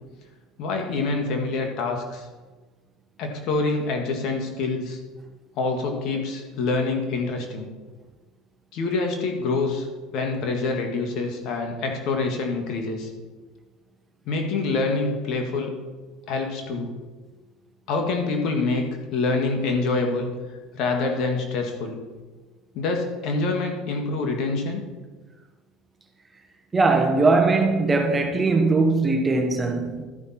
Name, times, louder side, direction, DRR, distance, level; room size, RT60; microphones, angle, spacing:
voice 1, 0.6-2.3 3.2-5.0 5.5-7.7 8.7-9.9 10.1-13.1 14.2-15.7 16.3-16.9 17.9-18.8 19.1-20.3 20.7-22.0 22.7-24.8, left 3 dB, 60° left, 1.8 m, -26 dB
voice 2, 26.7-30.0, right 3 dB, 20° right, 1.2 m, -20 dB
13.0 x 5.7 x 4.3 m
supercardioid pair, 100°, 0 cm